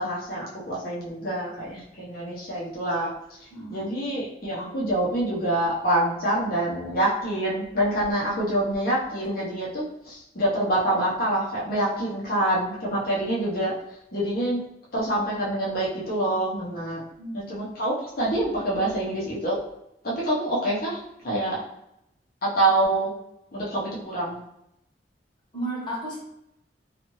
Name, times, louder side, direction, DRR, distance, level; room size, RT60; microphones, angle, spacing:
voice 1, 0.0-3.4 3.7-13.7 14.1-14.6 14.9-17.0 17.3-19.6 20.0-21.6 22.4-23.1 23.5-24.4, right 1 dB, 55° left, -6 dB, 0.9 m, -26 dB
voice 2, 3.5-3.9 17.2-17.5 25.5-26.2, right 1 dB, 25° left, -6 dB, 1.1 m, -33 dB
2.7 x 2.5 x 3.0 m, 0.80 s
head